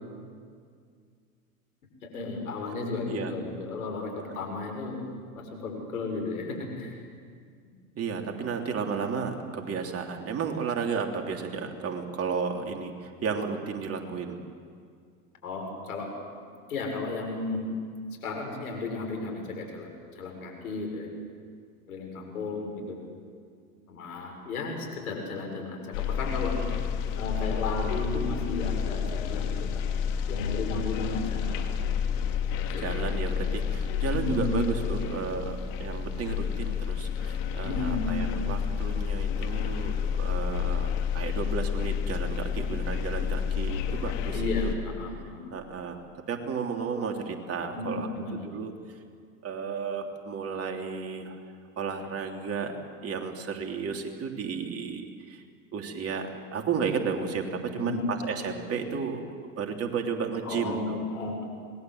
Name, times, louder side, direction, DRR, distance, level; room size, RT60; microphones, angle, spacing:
voice 1, 2.0-5.0 5.3-7.0 15.4-16.1 16.7-17.7 18.2-19.9 20.2-21.1 21.9-23.0 23.9-26.6 27.2-29.8 30.3-31.7 32.7-32.8 34.1-34.5 37.6-38.3 44.3-45.4 47.7-48.5 57.7-58.1 60.4-61.4, left 3 dB, 80° left, 2 dB, 6.8 m, -34 dB
voice 2, 7.9-14.4 32.8-44.7 45.5-48.7 49.4-51.4 51.8-52.8 53.0-55.4 55.7-59.2 59.6-61.0, right 5 dB, 35° right, 3 dB, 3.3 m, -33 dB
sound 1, 25.9-44.7, left 7 dB, 60° left, 2.6 m, -30 dB
26.5 x 21.0 x 8.0 m, 2.1 s
hypercardioid pair, 90°, 43 cm